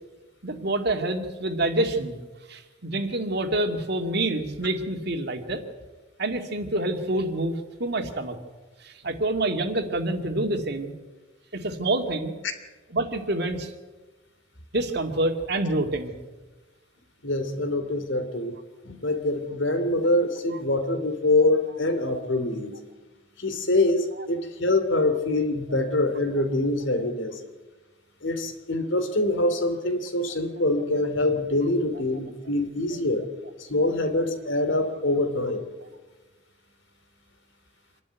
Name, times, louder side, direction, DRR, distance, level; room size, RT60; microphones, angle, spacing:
voice 1, 0.4-2.2 2.5-5.6 6.2-8.4 8.8-10.9 11.5-12.3 12.9-13.7 14.7-16.1, right 2 dB, 55° right, 5 dB, 2.2 m, -27 dB
voice 2, 17.2-18.5 18.8-22.7 23.4-27.4 28.2-33.3 33.6-35.7, left 2 dB, 70° left, 7 dB, 2.8 m, -25 dB
26.5 x 11.5 x 9.3 m, 1.2 s
head